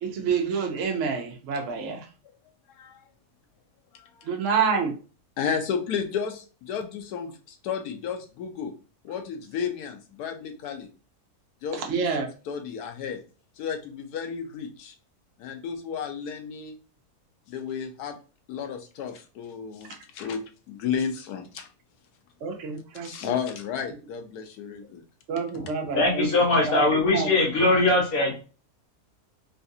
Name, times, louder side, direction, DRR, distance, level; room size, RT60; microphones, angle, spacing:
voice 1, 0.0-2.1 4.2-4.9 11.9-12.3 22.4-23.3 25.3-26.8 27.1-27.3, right 5 dB, 60° right, 2 dB, 1.0 m, -28 dB
voice 2, 3.9-4.3 5.4-8.7 9.0-10.9 11.6-13.2 13.6-14.9 15.4-16.7 17.5-18.2 18.5-21.7 23.0-25.0, left 7 dB, 90° left, 5 dB, 1.2 m, -33 dB
voice 3, 26.0-28.3, left 2 dB, 65° left, -3 dB, 1.8 m, -21 dB
3.8 x 2.4 x 2.6 m, 0.35 s
omnidirectional pair, 1.6 m